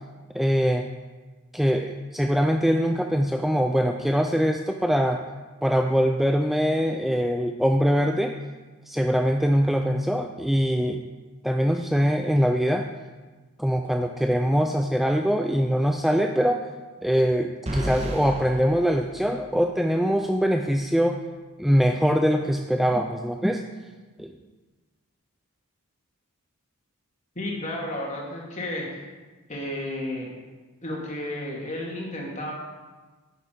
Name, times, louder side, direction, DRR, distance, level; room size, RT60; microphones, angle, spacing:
voice 1, 0.3-0.9 1.5-5.2 5.6-8.4 8.9-11.0 11.4-12.9 13.6-16.7 17.0-21.2 21.6-23.6 24.2-24.3, equal, ahead, 4 dB, 0.4 m, -23 dB
sound 1, 17.7-19.8, equal, 30° right, 1.3 m, -33 dB
voice 2, 27.4-29.0 29.5-30.3 30.8-32.5, left 1 dB, 35° left, -2 dB, 2.4 m, -32 dB
11.0 x 9.2 x 4.6 m, 1.3 s
head